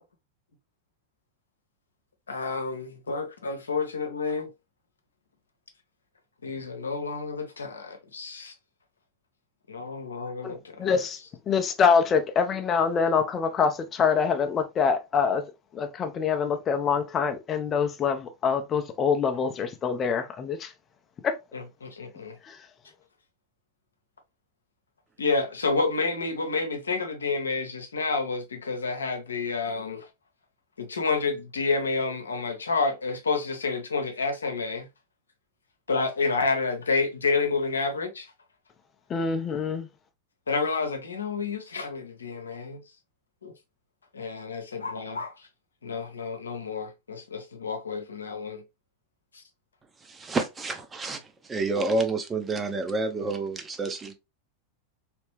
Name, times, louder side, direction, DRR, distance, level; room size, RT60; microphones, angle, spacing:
voice 1, 2.3-4.5 6.4-8.5 9.7-10.9 21.5-22.4 25.2-30.0 30.8-34.9 35.9-38.3 40.5-42.8 43.4-43.5 44.1-45.3 45.8-48.6 49.3-49.4, left 4 dB, 70° left, 0.9 m, -29 dB
voice 2, 10.4-11.2 11.5-20.7 21.2-21.4 22.4-22.6 39.1-39.9, left 6 dB, 25° left, 0.6 m, -25 dB
voice 3, 50.1-51.2 51.5-54.1, right 3 dB, 15° right, 0.8 m, -29 dB
3.4 x 3.1 x 3.1 m
figure-of-eight pair, 90°, 0 cm